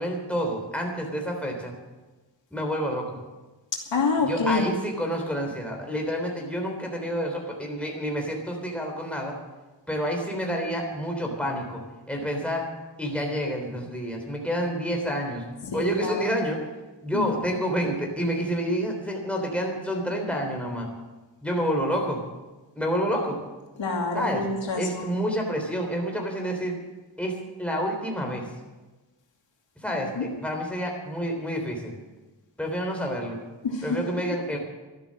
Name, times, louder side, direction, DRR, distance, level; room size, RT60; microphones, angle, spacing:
voice 1, 0.0-1.7 2.5-3.2 4.2-9.3 9.9-11.8 12.1-12.7 13.0-15.4 15.7-16.6 17.0-20.9 21.4-22.2 22.7-23.4 24.1-24.4 24.8-26.7 27.2-28.4 29.8-31.9 32.6-33.4 33.8-34.6, equal, 5° left, 1 dB, 3.5 m, -28 dB
voice 2, 3.7-4.7 15.7-16.3 17.1-17.3 23.8-25.2 30.2-30.3 33.6-34.0, left 3 dB, 85° left, 1 dB, 2.5 m, -27 dB
13.0 x 11.5 x 7.6 m, 1.2 s
wide cardioid pair, 115°, 43 cm